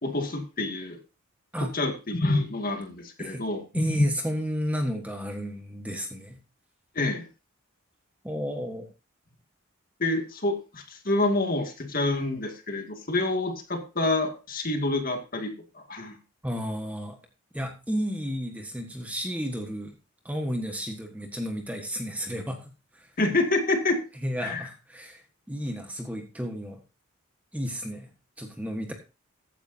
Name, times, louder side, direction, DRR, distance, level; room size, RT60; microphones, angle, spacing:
voice 1, 0.0-1.0 1.6-4.1 7.0-7.3 10.0-15.5 15.9-16.2 23.2-24.0 24.4-24.7, left 2 dB, 40° left, 4 dB, 2.1 m, -27 dB
voice 2, 3.7-6.4 8.2-8.9 16.4-17.2 17.5-19.9 20.2-22.7 22.9-23.1 24.2-25.2 25.5-26.8 27.5-28.1 28.4-28.9, equal, 5° right, 4 dB, 1.4 m, -32 dB
15.0 x 10.0 x 2.7 m, 0.31 s
head